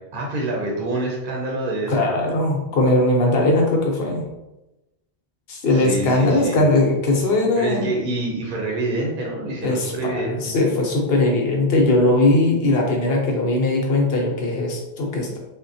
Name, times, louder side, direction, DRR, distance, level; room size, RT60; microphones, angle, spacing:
voice 1, 0.1-2.3 5.7-6.6 7.6-10.5, right 2 dB, 60° right, -2 dB, 0.8 m, -26 dB
voice 2, 1.9-4.3 5.5-7.8 9.6-10.1 10.4-15.4, left 2 dB, 70° left, 0 dB, 0.9 m, -19 dB
3.5 x 2.2 x 2.6 m, 0.96 s
omnidirectional pair, 1.0 m